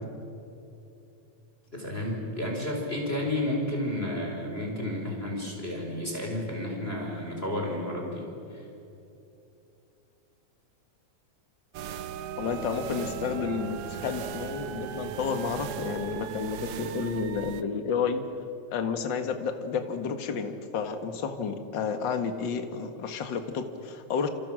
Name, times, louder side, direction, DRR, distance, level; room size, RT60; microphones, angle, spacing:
voice 1, 1.7-8.7, left 1 dB, 20° left, -1 dB, 4.6 m, -32 dB
sound 1, 11.7-17.6, right 9 dB, 65° right, 1.6 m, -37 dB
voice 2, 12.4-18.2 18.7-24.3, left 6 dB, 45° left, 7 dB, 2.0 m, -31 dB
29.5 x 28.0 x 6.4 m, 2.8 s
omnidirectional pair, 3.4 m